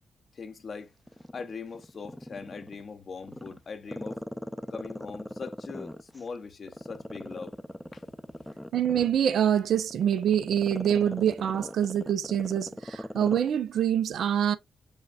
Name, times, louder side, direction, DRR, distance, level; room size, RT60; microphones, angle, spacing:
voice 1, 0.3-0.9 1.3-4.3 4.7-7.6 7.9-8.0 8.3-8.6, left 5 dB, 55° left, 0.6 m, -41 dB
Growling, 1.1-2.8 3.2-6.2 6.7-13.5 13.8-13.9, equal, 5° left, 0.4 m, -39 dB
voice 2, 8.7-14.6, right 9 dB, 70° right, 0.3 m, -25 dB
6.3 x 2.2 x 2.3 m
supercardioid pair, 45°, 0 cm